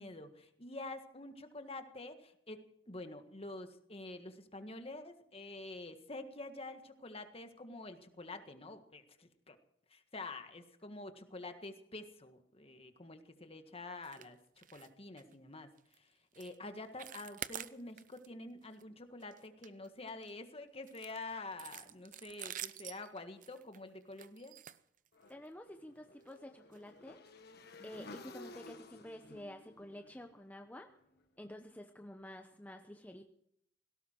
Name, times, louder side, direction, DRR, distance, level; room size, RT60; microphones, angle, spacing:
voice 1, 0.0-2.6 2.9-9.6 9.9-15.7 16.0-16.1 16.4-24.6 27.8-28.2 31.4-31.7, left 2 dB, 30° left, 7 dB, 1.7 m, -48 dB
sound 1, 14.0-14.3 14.6-14.9 15.2-15.3 15.8-16.0 16.3-16.6 16.8-18.3 18.6-18.8 19.2-20.3 20.9-25.5 26.2-26.4 26.7-26.8 27.3-27.4, right 10 dB, 45° right, 0.7 m, -48 dB
Motorcycle / Engine, 25.1-31.3, left 3 dB, 60° left, 1.6 m, -55 dB
voice 2, 25.3-27.2 27.8-30.9 31.4-33.3, left 1 dB, 10° left, 5 dB, 0.8 m, -50 dB
18.0 x 17.0 x 4.6 m, 0.72 s
head